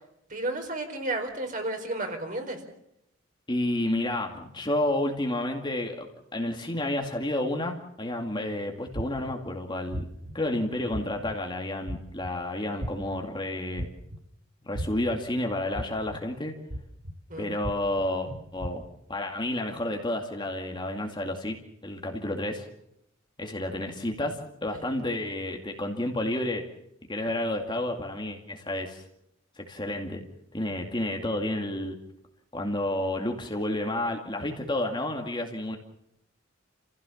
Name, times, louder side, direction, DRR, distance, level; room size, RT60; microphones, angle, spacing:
voice 1, 0.3-2.6 12.7-12.8 17.3-17.5 18.3-18.4 24.7-24.9, right 2 dB, 40° right, 4 dB, 4.6 m, -32 dB
voice 2, 3.5-10.1 10.3-13.9 14.6-16.5 17.4-18.8 19.1-21.6 21.8-22.7 23.4-26.6 27.1-29.0 29.6-30.2 30.5-32.0 32.5-35.8, left 1 dB, 20° left, 3 dB, 2.3 m, -30 dB
sound 1, 8.9-9.4 9.9-10.3 10.9-11.3 11.9-12.3 12.8-13.2 13.8-14.2 14.7-15.2 15.7-16.2 16.7-17.1 17.6-18.0 18.6-18.7, equal, 60° right, 2.0 m, -34 dB
29.0 x 16.0 x 7.2 m, 0.78 s
head